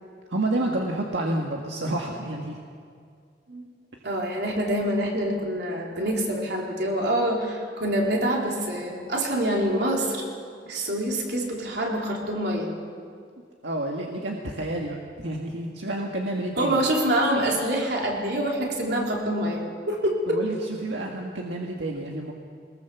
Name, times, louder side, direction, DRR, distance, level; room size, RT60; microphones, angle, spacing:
voice 1, 0.3-2.6 13.6-16.8 20.3-20.6 20.8-22.3, right 1 dB, 90° right, 0 dB, 1.9 m, -29 dB
voice 2, 4.0-10.3 10.7-12.7 16.6-20.4, right 1 dB, 65° right, -1 dB, 3.9 m, -26 dB
22.5 x 20.5 x 7.1 m, 2.2 s
head